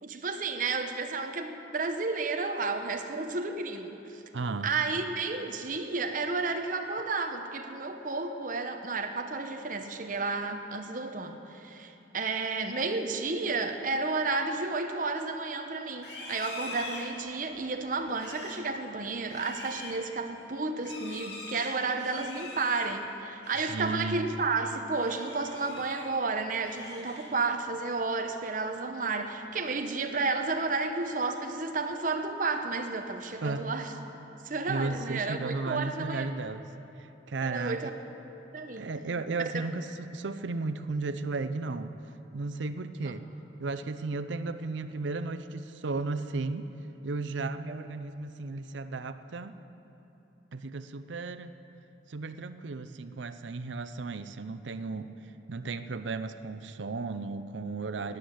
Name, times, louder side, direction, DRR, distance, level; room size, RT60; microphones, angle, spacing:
voice 1, 0.0-4.2 4.6-33.9 34.4-36.3 37.4-37.9 38.5-38.9 47.7-47.8, right 3 dB, 45° right, 6 dB, 0.9 m, -32 dB
voice 2, 4.3-4.7 23.5-24.3 33.4-33.6 34.7-36.6 37.0-37.9 38.8-41.9 42.3-43.3 43.6-46.7 47.0-49.6 50.5-51.5 52.1-55.1 55.5-58.2, right 3 dB, 90° right, 11 dB, 0.6 m, -34 dB
Livestock farm animals working animals, 15.9-23.9 24.2-24.5 24.9-26.2 26.5-27.6, left 2 dB, 65° left, 2.3 m, -45 dB
12.0 x 10.0 x 7.9 m, 3.0 s
head